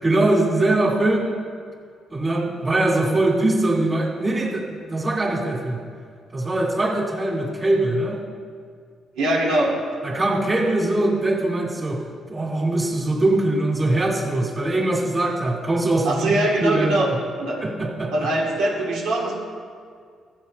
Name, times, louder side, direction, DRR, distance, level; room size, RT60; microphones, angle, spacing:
voice 1, 0.0-1.3 2.1-5.8 6.3-8.2 10.0-16.4 16.6-17.2 17.6-18.3, right 2 dB, 25° right, 0 dB, 2.4 m, -22 dB
voice 2, 9.2-9.8 16.0-17.1 17.4-17.6 18.1-19.4, right 1 dB, 90° right, -1 dB, 2.3 m, -22 dB
13.0 x 7.4 x 5.3 m, 2.1 s
cardioid pair, 90°, 0 cm